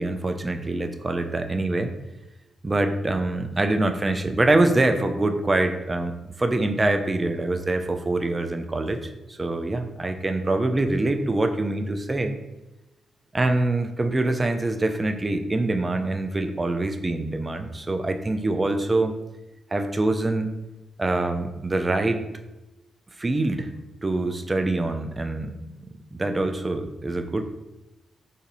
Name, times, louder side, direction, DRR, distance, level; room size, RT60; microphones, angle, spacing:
voice 1, 0.0-1.9 2.6-9.1 9.4-12.3 13.3-19.1 19.7-20.5 21.0-22.2 23.2-23.7 24.0-25.6 26.1-27.5, right 2 dB, 25° right, 7 dB, 0.4 m, -24 dB
4.1 x 2.7 x 2.6 m, 0.97 s
cardioid pair, 70°, 0 cm